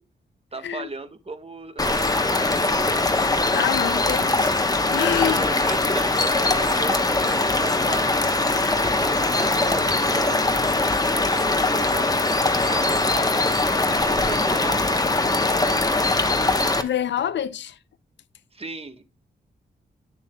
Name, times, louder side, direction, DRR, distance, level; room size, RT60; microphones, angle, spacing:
voice 1, 0.5-3.1 4.9-10.4 11.0-12.2 12.5-15.0 18.5-19.0, right 3 dB, 30° right, 1.2 m, -36 dB
sound 1, 1.8-16.8, left 2 dB, 20° left, 1.0 m, -21 dB
voice 2, 3.5-4.6 4.9-5.4 16.8-17.8, left 10 dB, 75° left, 0.5 m, -26 dB
10.0 x 6.9 x 2.2 m
cardioid pair, 65°, 19 cm